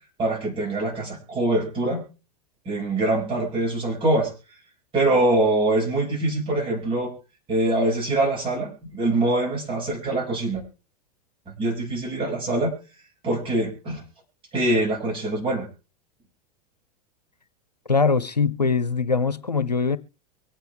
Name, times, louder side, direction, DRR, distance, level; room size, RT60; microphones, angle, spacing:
voice 1, 0.2-2.0 2.6-4.3 4.9-7.1 7.5-10.6 11.6-12.7 13.2-14.0 14.5-15.7, right 2 dB, 25° right, 6.5 m, -24 dB
voice 2, 17.9-20.0, left 4 dB, 85° left, 0.7 m, -22 dB
24.0 x 9.1 x 3.4 m
figure-of-eight pair, 90°, 20 cm